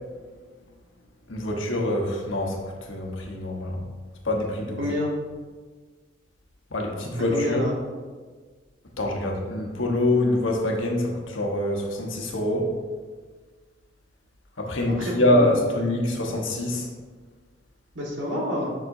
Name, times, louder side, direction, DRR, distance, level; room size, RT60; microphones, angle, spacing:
voice 1, 1.3-3.8 4.2-4.8 6.7-7.6 9.0-12.7 14.6-16.9, left 1 dB, 80° left, 0 dB, 1.2 m, -25 dB
voice 2, 4.8-5.1 7.3-7.7 15.0-15.6 17.9-18.7, left 1 dB, 70° right, -3 dB, 1.7 m, -28 dB
7.5 x 6.0 x 2.7 m, 1.5 s
head